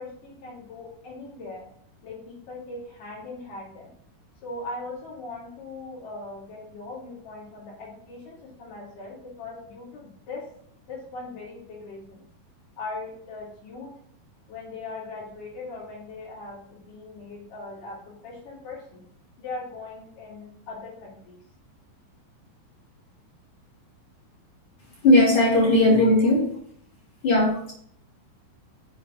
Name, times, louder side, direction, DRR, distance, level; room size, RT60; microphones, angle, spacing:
voice 1, 0.0-1.7 2.0-3.9 4.4-10.5 10.9-12.2 12.8-14.0 14.5-19.0 19.4-21.4 26.0-26.1 27.5-27.6, left 3 dB, 65° left, -5 dB, 4.2 m, -39 dB
voice 2, 25.0-26.5 27.2-27.7, left 1 dB, 35° left, -4 dB, 3.7 m, -18 dB
7.8 x 5.2 x 5.2 m, 0.63 s
omnidirectional pair, 4.1 m